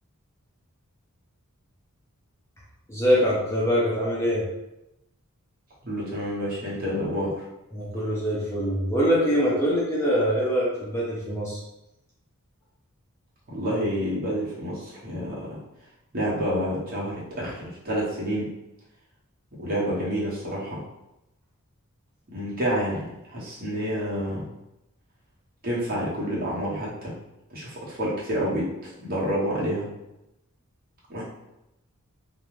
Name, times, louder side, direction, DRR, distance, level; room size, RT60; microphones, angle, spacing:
voice 1, 2.9-4.4 7.7-11.6, equal, 10° left, -6 dB, 0.5 m, -23 dB
voice 2, 5.8-7.3 13.5-15.6 16.1-18.5 19.6-20.8 22.3-24.5 25.6-27.1 27.5-29.9 31.1-31.2, equal, 40° right, -6 dB, 0.9 m, -28 dB
2.4 x 2.2 x 3.1 m, 0.91 s
head